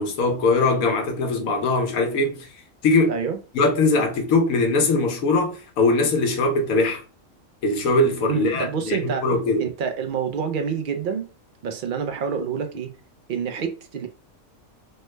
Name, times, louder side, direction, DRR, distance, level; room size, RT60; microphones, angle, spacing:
voice 1, 0.0-2.5 2.8-3.1 3.5-7.0 7.6-9.6, left 2 dB, 90° left, 1.2 m, -21 dB
voice 2, 3.1-3.4 8.3-9.2 9.6-11.3 11.6-12.9 13.3-14.1, right 6 dB, 80° right, 0.4 m, -27 dB
3.2 x 2.1 x 3.0 m
omnidirectional pair, 1.4 m